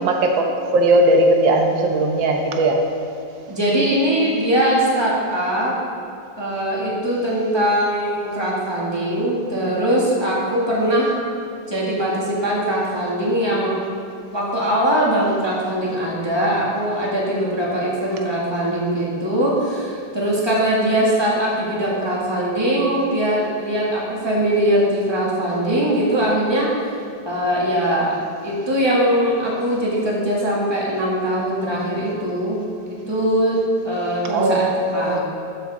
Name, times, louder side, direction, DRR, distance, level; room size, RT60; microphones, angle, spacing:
voice 1, 0.0-2.8 34.3-35.2, right 1 dB, 85° right, 2 dB, 1.7 m, -18 dB
voice 2, 3.5-5.7 6.4-11.2 11.7-13.8 14.3-26.7 27.3-32.6 32.9-33.6 33.8-34.7 34.9-35.2, right 1 dB, 15° right, -5 dB, 2.1 m, -21 dB
13.0 x 8.1 x 3.7 m, 2.5 s
omnidirectional pair, 2.0 m